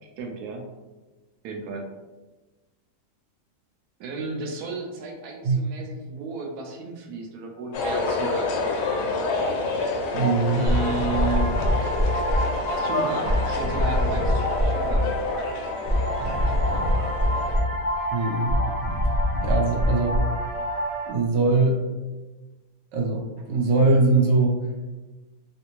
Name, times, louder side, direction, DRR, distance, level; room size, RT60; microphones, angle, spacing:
voice 1, 0.0-0.7 1.4-1.9 4.0-9.2 10.5-11.6 12.8-15.2 16.5-17.0, right 4 dB, 70° right, 2 dB, 1.1 m, -34 dB
sound 1, 7.7-17.6, left 3 dB, 75° left, 1.1 m, -28 dB
voice 2, 10.1-10.6 18.1-18.6 19.4-20.2 21.1-21.8 22.9-24.6, right 3 dB, 85° right, 0 dB, 1.3 m, -21 dB
sound 2, 10.7-21.1, equal, 45° right, 0.7 m, -25 dB
3.3 x 2.7 x 2.9 m, 1.2 s
omnidirectional pair, 1.8 m